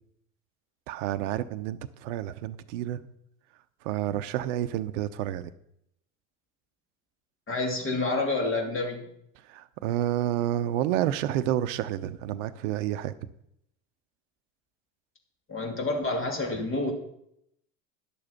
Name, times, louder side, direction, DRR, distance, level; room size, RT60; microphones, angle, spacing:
voice 1, 0.9-3.1 3.8-5.5 9.5-13.1, right 12 dB, 75° right, 12 dB, 0.7 m, -29 dB
voice 2, 7.5-9.0 15.5-16.9, left 2 dB, 35° left, 3 dB, 2.6 m, -28 dB
11.0 x 6.9 x 5.7 m, 0.75 s
hypercardioid pair, 75°, 38 cm